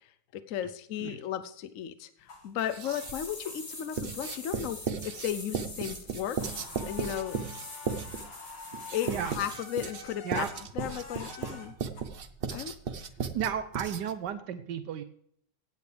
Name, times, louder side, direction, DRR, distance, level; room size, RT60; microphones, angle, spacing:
voice 1, 0.3-2.1 2.4-4.8 5.0-6.4 6.9-7.4 8.9-10.5 10.7-11.7 12.5-12.7, left 10 dB, 65° left, 12 dB, 0.9 m, -35 dB
sound 1, 2.2-4.0 4.3-5.2 5.5-5.7 5.9-12.0, left 4 dB, 85° left, 2.7 m, -47 dB
Writing, 2.6-3.3 4.0-14.3, right 6 dB, 45° right, 0.8 m, -36 dB
sound 2, 2.8-9.9 10.3-10.5, left 2 dB, 20° left, 1.7 m, -45 dB
voice 2, 13.3-15.0, right 9 dB, 80° right, 10 dB, 1.3 m, -33 dB
16.5 x 9.5 x 3.4 m, 0.65 s
omnidirectional pair, 1.9 m